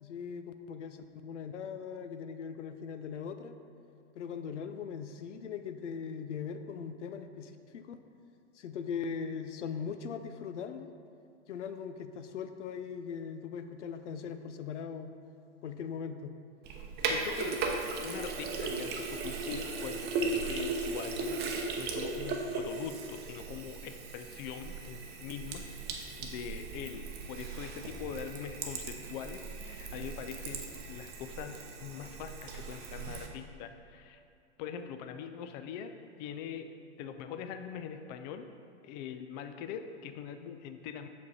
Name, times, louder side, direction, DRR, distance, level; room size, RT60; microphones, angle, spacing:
voice 1, 0.0-1.0 1.2-3.5 4.1-8.0 8.6-10.9 11.5-15.1 15.6-16.4, left 6 dB, 85° left, 9 dB, 0.6 m, -40 dB
Sink (filling or washing), 16.6-33.3, right 4 dB, 30° right, 0.7 m, -37 dB
voice 2, 17.1-17.7 18.0-34.2 34.6-35.9 36.2-36.7 37.0-38.5 38.8-41.1, left 8 dB, 40° left, 8 dB, 0.4 m, -42 dB
6.5 x 5.1 x 4.1 m, 2.4 s
hypercardioid pair, 115°, 35 cm